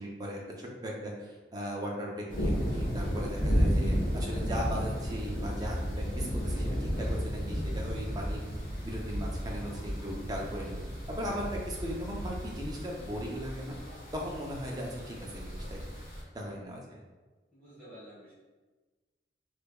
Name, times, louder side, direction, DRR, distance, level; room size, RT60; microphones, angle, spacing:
voice 1, 0.0-10.8 11.1-13.8 14.1-16.0 16.3-17.0, equal, 20° right, -2 dB, 0.5 m, -38 dB
sound 1, 2.3-16.2, equal, 45° left, 1.0 m, -33 dB
voice 2, 17.5-18.3, equal, 10° left, -13 dB, 1.4 m, -50 dB
3.3 x 3.2 x 2.2 m, 1.3 s
head